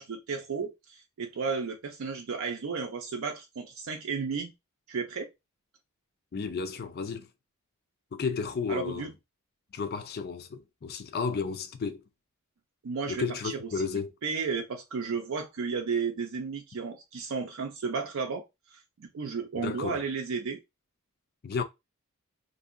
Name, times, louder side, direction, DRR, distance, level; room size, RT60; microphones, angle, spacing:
voice 1, 0.0-4.5 4.9-5.3 8.7-9.1 12.8-13.7 14.2-18.4 18.7-20.6, right 5 dB, 70° right, 0.4 m, -33 dB
voice 2, 6.3-7.3 8.1-9.1 9.7-12.0 13.1-14.1 19.5-20.0 21.4-21.6, left 5 dB, 45° left, 0.4 m, -33 dB
2.7 x 2.7 x 2.4 m
head